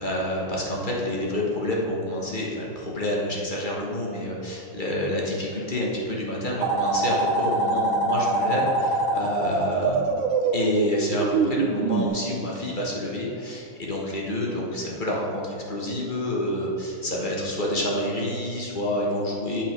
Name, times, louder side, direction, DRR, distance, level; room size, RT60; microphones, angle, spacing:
voice 1, 0.0-10.2 10.5-19.6, left 1 dB, 30° left, -3 dB, 0.9 m, -28 dB
sound 1, 6.6-12.1, right 3 dB, 70° right, 1.3 m, -24 dB
8.6 x 5.8 x 5.1 m, 2.8 s
omnidirectional pair, 2.4 m